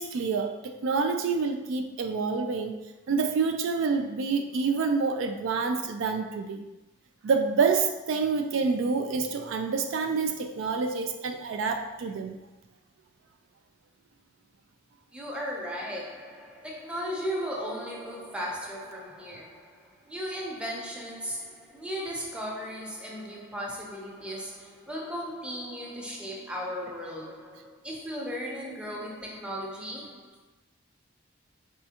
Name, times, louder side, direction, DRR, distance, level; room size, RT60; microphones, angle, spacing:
voice 1, 0.0-2.8 3.1-6.6 7.2-12.4, right 4 dB, 70° right, 6 dB, 0.3 m, -27 dB
voice 2, 15.1-30.4, equal, 5° right, -3 dB, 0.7 m, -36 dB
4.2 x 3.5 x 2.8 m, 1.0 s
head